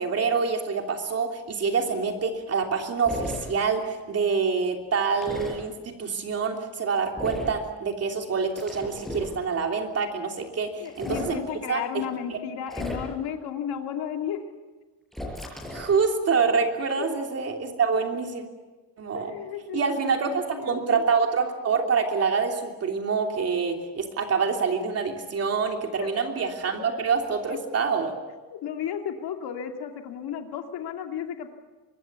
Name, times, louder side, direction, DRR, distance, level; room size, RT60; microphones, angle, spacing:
voice 1, 0.0-11.4 11.7-12.0 12.3-12.4 15.7-18.4 19.0-19.3 19.7-28.1, right 5 dB, 35° right, 3 dB, 3.1 m, -26 dB
sound 1, 3.1-3.4 5.2-5.6 7.2-7.6 8.6-9.3 10.9-11.3 12.7-13.3 15.1-16.0, left 1 dB, ahead, 6.4 m, -34 dB
voice 2, 10.8-14.4 17.0-17.1 19.1-21.0 25.9-26.4 26.8-26.9 27.4-27.6 28.5-31.5, left 8 dB, 65° left, 4 dB, 2.7 m, -34 dB
24.5 x 21.5 x 8.4 m, 1.3 s
cardioid pair, 165°, 42 cm